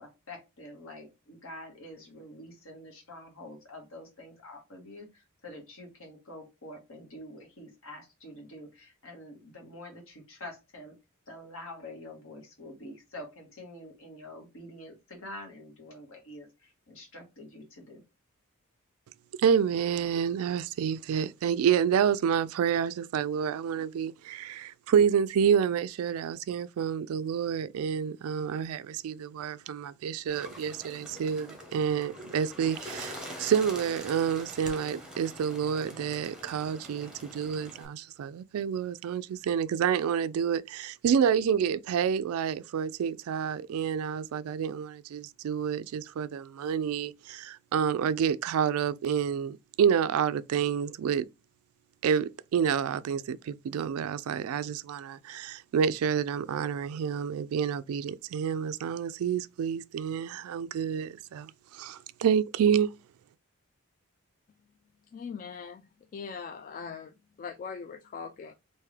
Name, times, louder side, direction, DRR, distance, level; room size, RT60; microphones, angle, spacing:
voice 1, 0.0-10.9 11.3-18.0, left 1 dB, 65° left, 1.6 m, -46 dB
voice 2, 19.4-51.3 52.0-62.9, right 7 dB, 70° right, 0.3 m, -28 dB
Bird, 30.3-37.9, equal, 5° right, 0.9 m, -44 dB
voice 3, 65.1-65.8 66.1-68.5, left 6 dB, 40° left, 0.3 m, -41 dB
3.4 x 2.7 x 3.2 m
head